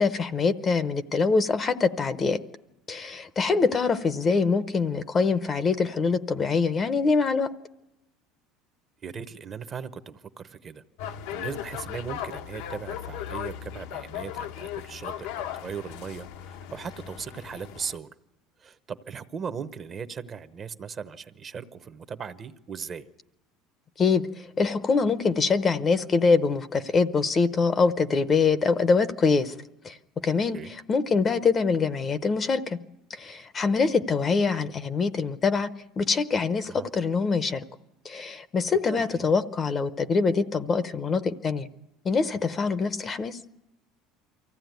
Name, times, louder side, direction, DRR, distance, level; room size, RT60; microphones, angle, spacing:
voice 1, 0.0-2.4 2.9-7.5 24.0-29.5 29.8-32.8 33.1-35.7 36.0-37.6 38.0-41.7 42.0-43.4, left 4 dB, 20° left, 0.7 m, -24 dB
voice 2, 9.0-18.1 18.6-23.1 30.5-30.7 36.6-36.9 38.9-39.3, right 6 dB, 25° right, 0.8 m, -38 dB
sound 1, 11.0-18.0, left 10 dB, 75° left, 0.9 m, -37 dB
24.0 x 15.5 x 9.2 m
cardioid pair, 160°, 0 cm